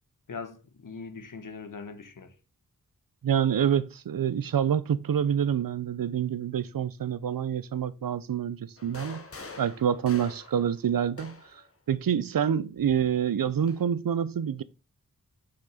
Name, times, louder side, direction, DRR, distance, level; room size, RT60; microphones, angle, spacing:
voice 1, 0.3-2.3, left 4 dB, 65° left, 1.3 m, -41 dB
voice 2, 3.2-9.2 9.6-14.6, right 8 dB, 85° right, 0.7 m, -27 dB
sound 1, 8.8-11.7 12.8-13.9, left 3 dB, 40° left, 1.1 m, -45 dB
6.8 x 5.9 x 4.9 m
wide cardioid pair, 110°, 33 cm